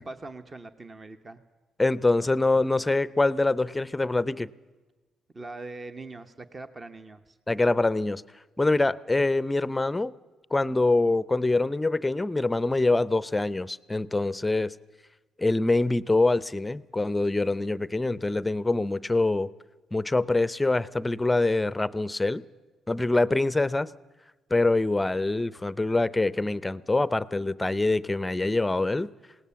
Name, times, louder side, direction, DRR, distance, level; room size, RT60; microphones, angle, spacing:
voice 1, 0.0-1.4 5.3-7.4, right 2 dB, 30° right, 9 dB, 1.0 m, -42 dB
voice 2, 1.8-4.5 7.5-8.2 8.6-10.1 10.5-14.7 15.4-19.5 19.9-22.4 22.9-23.9 24.5-29.1, left 2 dB, 15° left, 18 dB, 0.6 m, -25 dB
20.5 x 18.0 x 7.0 m, 1.2 s
cardioid pair, 90°, 0 cm